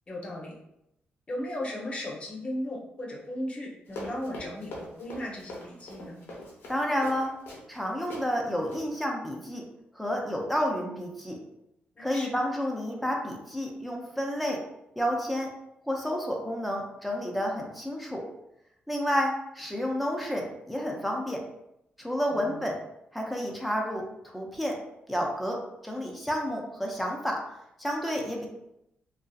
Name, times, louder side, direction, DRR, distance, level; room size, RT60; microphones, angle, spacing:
voice 1, 0.1-0.5 1.3-6.2 11.9-12.3 22.3-22.7, left 1 dB, 30° left, -3 dB, 0.8 m, -36 dB
Run, 3.9-7.8 8.1-8.2 8.6-8.8, left 1 dB, 75° left, 0.7 m, -42 dB
voice 2, 6.7-7.3 7.7-9.6 9.9-11.4 12.0-14.6 15.0-15.5 15.8-18.2 18.9-21.4 22.0-22.7 23.1-24.8 25.1-25.6 25.8-27.4 27.8-28.5, equal, ahead, -1 dB, 0.5 m, -30 dB
2.6 x 2.3 x 2.3 m, 0.81 s
cardioid pair, 85°, 4 cm